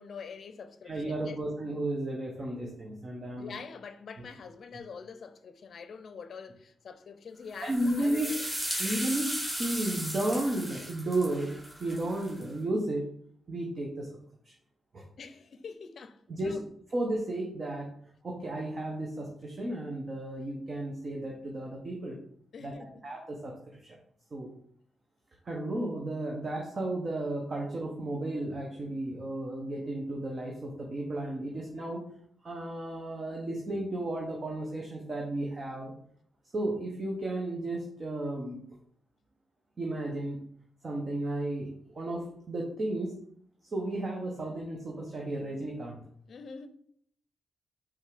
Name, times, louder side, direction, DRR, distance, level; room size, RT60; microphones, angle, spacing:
voice 1, 0.0-1.4 3.4-8.4 15.2-16.6 22.5-23.0 46.3-46.7, left 5 dB, 60° left, 0.6 m, -45 dB
voice 2, 0.8-3.5 7.6-8.3 8.8-11.5 11.8-13.1 13.5-14.1 14.5-14.6 14.9-15.0 16.3-16.6 16.9-17.9 18.2-22.2 22.6-23.6 23.8-24.0 24.3-24.5 25.4-32.0 32.4-35.9 36.5-38.6 39.8-40.4 40.8-43.2 43.7-46.0, right 1 dB, 40° right, 1.0 m, -33 dB
sound 1, 7.6-12.4, equal, 10° right, 1.9 m, -36 dB
5.4 x 3.5 x 5.0 m
cardioid pair, 120°, 0 cm